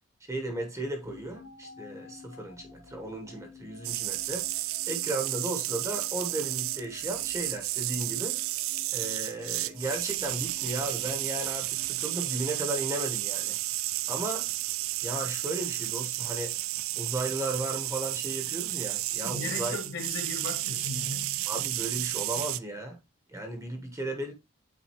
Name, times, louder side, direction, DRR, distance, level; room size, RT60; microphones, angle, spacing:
voice 1, 0.2-4.5 4.9-8.4 8.9-13.6 14.1-14.5 15.0-16.5 17.0-19.8 21.5-23.0 23.3-24.3, right 1 dB, 15° right, 1.0 m, -35 dB
sound 1, 1.0-13.1, left 4 dB, 90° left, 2.5 m, -52 dB
sound 2, 3.8-22.6, right 17 dB, 75° right, 0.3 m, -32 dB
voice 2, 19.2-21.4, left 3 dB, 65° left, 2.0 m, -37 dB
8.5 x 4.0 x 2.9 m
head